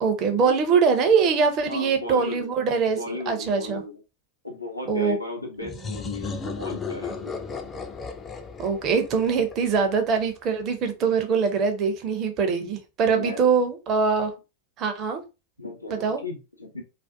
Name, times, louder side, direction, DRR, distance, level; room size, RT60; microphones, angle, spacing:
voice 1, 0.0-3.8 4.9-5.2 5.7-5.8 8.6-14.3 14.8-15.2 15.9-16.2, right 5 dB, 35° right, 6 dB, 0.5 m, -23 dB
voice 2, 1.6-2.5 2.9-3.9 4.4-7.4 13.1-13.5 15.6-16.8, left 2 dB, 85° left, 1 dB, 0.6 m, -35 dB
sound 1, 5.6-10.2, left 4 dB, 20° left, 0.4 m, -35 dB
2.4 x 2.1 x 2.5 m, 0.29 s
figure-of-eight pair, 90°, 0 cm